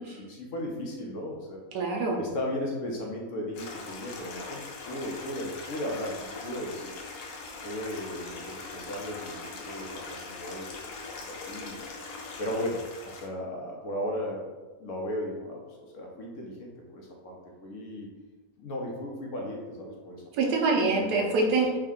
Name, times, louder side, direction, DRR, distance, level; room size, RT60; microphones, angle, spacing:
voice 1, 0.2-1.6 2.2-6.9 7.6-10.9 11.3-11.8 12.4-14.5 14.8-17.4 17.6-18.1 18.6-20.2 20.8-21.6, left 1 dB, 65° left, -1 dB, 0.8 m, -36 dB
voice 2, 1.7-2.2 20.3-21.8, right 3 dB, 90° right, 0 dB, 1.2 m, -25 dB
Stream, 3.5-13.3, left 4 dB, 90° left, 1.2 m, -41 dB
3.4 x 2.2 x 3.6 m, 1.3 s
omnidirectional pair, 1.6 m